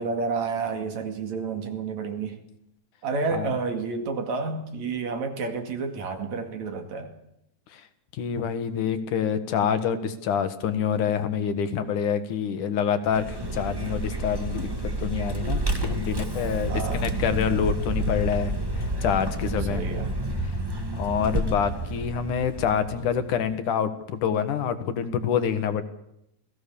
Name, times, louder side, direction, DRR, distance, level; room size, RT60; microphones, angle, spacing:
voice 1, 0.0-2.4 3.0-7.1 16.7-17.1 19.7-20.1, right 4 dB, 60° right, 6 dB, 3.4 m, -30 dB
voice 2, 8.1-19.8 20.4-20.5 20.9-25.8, left 7 dB, 75° left, 9 dB, 3.0 m, -27 dB
Vehicle, 13.1-23.4, right 1 dB, 10° right, 1.2 m, -30 dB
28.0 x 18.0 x 7.0 m, 0.80 s
omnidirectional pair, 3.6 m